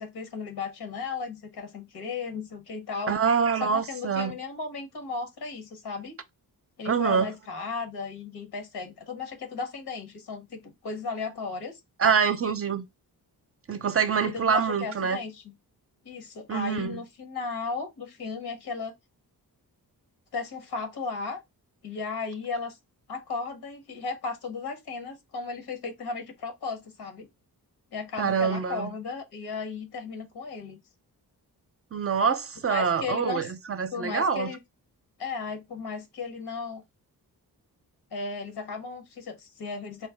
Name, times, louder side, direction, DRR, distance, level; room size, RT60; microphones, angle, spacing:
voice 1, 0.0-3.2 3.6-6.1 6.8-11.8 14.3-15.5 16.0-18.9 20.3-21.4 21.8-22.8 23.1-27.3 27.9-30.8 32.7-33.5 33.9-34.6 35.2-36.8 38.1-40.1, left 4 dB, 90° left, 1.4 m, -35 dB
voice 2, 3.1-4.3 6.9-7.3 12.0-12.8 13.7-15.2 16.5-17.0 28.2-28.9 31.9-34.5, right 6 dB, 40° right, 0.5 m, -25 dB
4.4 x 2.1 x 3.4 m
cardioid pair, 70°, 38 cm